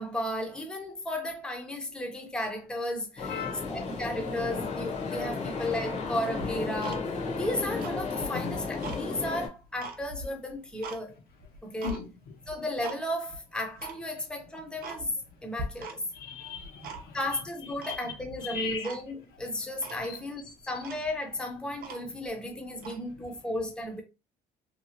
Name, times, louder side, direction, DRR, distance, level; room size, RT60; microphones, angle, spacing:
voice 1, 0.0-3.4 3.7-11.1 11.6-12.0 12.5-15.1 15.4-16.0 17.1-24.0, left 1 dB, 5° left, 0.7 m, -34 dB
voice 2, 3.2-3.9 5.3-5.5 8.3-8.5 11.8-12.3 16.1-17.2 17.8-18.1 18.5-18.9 20.0-20.2 20.6-20.7, left 6 dB, 65° left, 0.9 m, -38 dB
sound 1, 3.2-9.5, left 4 dB, 40° left, 0.9 m, -34 dB
Tick-tock, 6.4-7.4 7.7-9.0 9.5-11.0 11.4-12.0 12.5-13.0 13.3-13.4 13.8-14.0 14.4-14.5 14.8-15.3 15.6-16.2 16.5-17.3 17.8-18.4 18.8-19.0 19.4-19.5 19.8-20.0 20.5-20.6 20.8-22.3 22.8-23.0, right 2 dB, 60° right, 0.6 m, -41 dB
2.8 x 2.3 x 2.8 m
cardioid pair, 110°, 17 cm